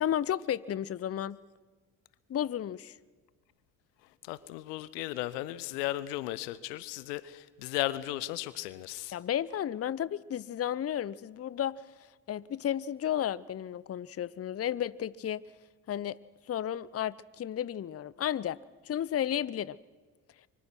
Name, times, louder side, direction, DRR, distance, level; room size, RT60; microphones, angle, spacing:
voice 1, 0.0-1.4 2.3-2.9 9.1-11.8 12.3-15.4 15.9-16.2 16.5-18.6 18.8-19.8, left 10 dB, 30° left, 21 dB, 0.7 m, -33 dB
voice 2, 4.2-9.2, left 16 dB, 75° left, 18 dB, 0.9 m, -35 dB
24.0 x 23.5 x 6.1 m, 1.3 s
figure-of-eight pair, 45°, 48 cm